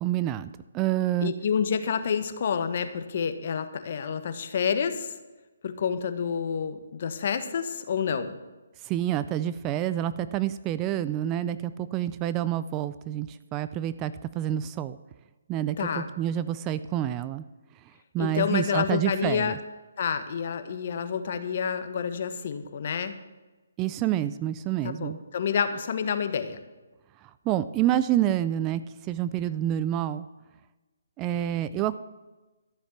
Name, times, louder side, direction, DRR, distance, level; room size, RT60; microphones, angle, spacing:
voice 1, 0.0-1.3 8.8-15.0 15.5-17.4 18.1-19.6 23.8-25.2 27.5-30.3 31.2-32.0, right 12 dB, 20° right, 14 dB, 0.4 m, -28 dB
voice 2, 1.2-5.1 5.6-8.4 15.8-16.1 18.2-19.6 20.0-23.1 24.8-26.6, left 7 dB, 50° left, 10 dB, 1.3 m, -28 dB
13.5 x 7.2 x 7.4 m, 1.1 s
hypercardioid pair, 155°, 0 cm